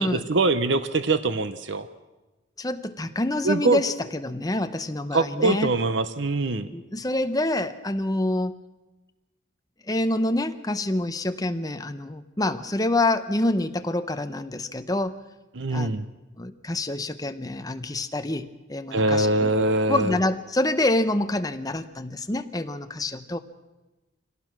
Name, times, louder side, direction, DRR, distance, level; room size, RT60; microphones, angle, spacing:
voice 1, 0.0-1.9 3.4-3.8 5.1-6.7 15.5-16.0 18.9-20.2, right 2 dB, 65° right, 11 dB, 0.9 m, -23 dB
voice 2, 2.6-5.7 6.7-8.5 9.9-15.2 15.7-15.9 16.4-19.5 19.9-23.4, left 1 dB, 20° left, 9 dB, 0.9 m, -27 dB
25.0 x 18.0 x 6.1 m, 1.1 s
head